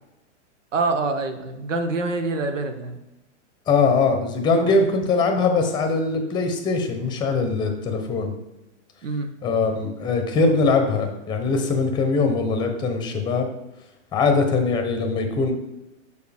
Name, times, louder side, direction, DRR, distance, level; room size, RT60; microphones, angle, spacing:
voice 1, 0.7-3.0 4.5-4.8 9.0-9.3, right 3 dB, 90° right, 7 dB, 1.0 m, -26 dB
voice 2, 3.7-8.3 9.4-13.5 14.1-15.5, left 4 dB, 10° left, 5 dB, 0.8 m, -21 dB
6.6 x 4.6 x 3.4 m, 0.94 s
hypercardioid pair, 130°, 37 cm